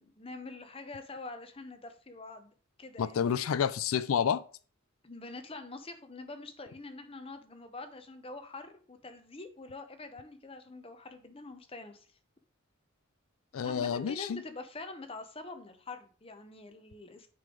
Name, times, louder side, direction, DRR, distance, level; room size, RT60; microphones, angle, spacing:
voice 1, 0.0-3.4 5.0-12.1 13.6-17.3, left 3 dB, 25° left, 0.8 m, -45 dB
voice 2, 3.0-4.4 13.5-14.4, left 7 dB, 85° left, 0.4 m, -29 dB
9.4 x 3.3 x 3.8 m
head